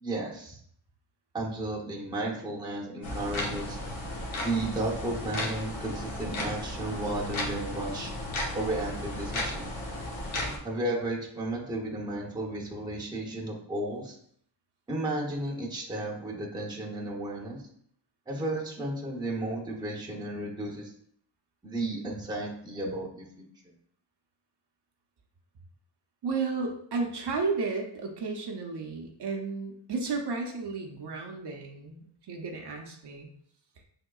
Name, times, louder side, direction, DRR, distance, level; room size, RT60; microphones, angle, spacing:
voice 1, 0.0-0.6 1.3-3.8 4.3-8.1 8.5-9.8 10.6-14.2 14.9-17.7 18.3-20.9 21.6-23.2, right 2 dB, 10° right, -3 dB, 0.8 m, -33 dB
sound 1, 3.0-10.6, left 1 dB, 80° left, 1.1 m, -35 dB
voice 2, 26.2-33.3, right 4 dB, 60° right, 1 dB, 0.8 m, -33 dB
5.7 x 3.6 x 2.3 m, 0.64 s
wide cardioid pair, 150°, 46 cm